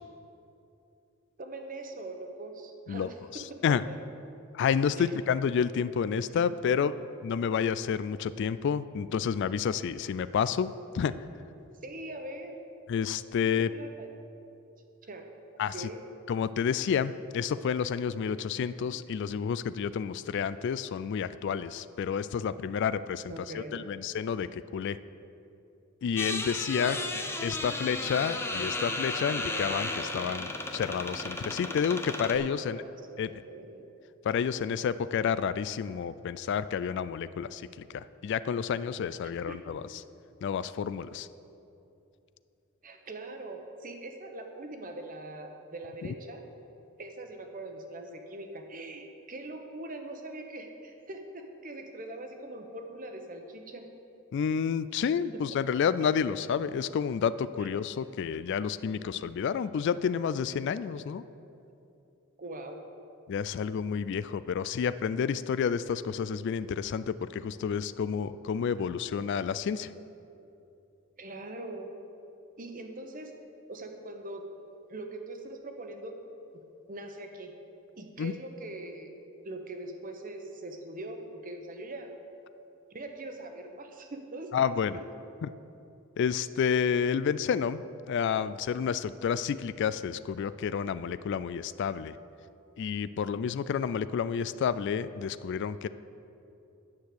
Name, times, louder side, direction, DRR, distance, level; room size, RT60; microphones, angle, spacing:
voice 1, 1.4-3.7 5.0-5.1 6.3-6.8 11.8-12.5 13.5-14.1 15.1-15.3 15.7-16.0 23.3-23.8 26.8-27.1 32.3-33.8 39.5-39.8 42.8-46.4 47.0-53.8 54.9-55.0 55.3-55.4 56.0-56.1 57.6-57.7 62.4-62.8 71.2-71.9 72.6-73.3 73.7-74.4 74.9-76.1 76.5-76.6 76.9-77.5 78.0-79.1 79.4-82.1 82.9-84.7, right 2 dB, 40° right, 5 dB, 1.0 m, -42 dB
voice 2, 2.9-3.8 4.5-6.9 7.2-11.1 12.9-13.7 15.6-15.9 16.3-25.0 26.0-27.0 27.4-32.8 33.2-33.3 34.2-40.0 40.4-41.3 46.0-46.1 54.3-61.2 63.3-69.9 78.2-78.3 84.5-85.0 85.4-85.5 86.2-92.2 92.8-95.9, left 7 dB, 60° left, 15 dB, 0.3 m, -30 dB
sound 1, 26.2-32.4, left 2 dB, 10° left, 0.7 m, -34 dB
9.6 x 6.6 x 7.8 m, 2.8 s
head